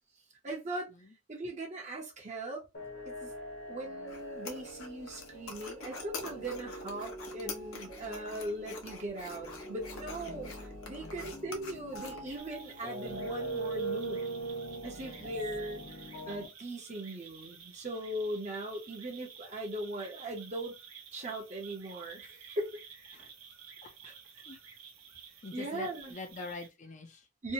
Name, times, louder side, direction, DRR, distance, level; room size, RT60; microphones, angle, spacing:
voice 1, 0.4-0.9 1.3-2.6 3.0-3.3 3.7-10.5 10.9-14.2 14.8-20.8 21.1-23.3 24.0-24.1 25.5-26.1 27.4-27.5, right 1 dB, 35° right, 0.7 m, -39 dB
sound 1, 2.7-16.5, right 2 dB, 55° left, 1.0 m, -42 dB
sound 2, 4.1-12.4, left 3 dB, 90° left, 0.7 m, -46 dB
voice 2, 11.0-11.3 15.0-15.3 23.1-23.3 23.8-23.9 24.5-24.6 25.4-27.3, left 3 dB, 35° left, 0.5 m, -45 dB
sound 3, 12.2-26.7, right 7 dB, 80° right, 0.7 m, -52 dB
2.7 x 2.1 x 2.7 m
head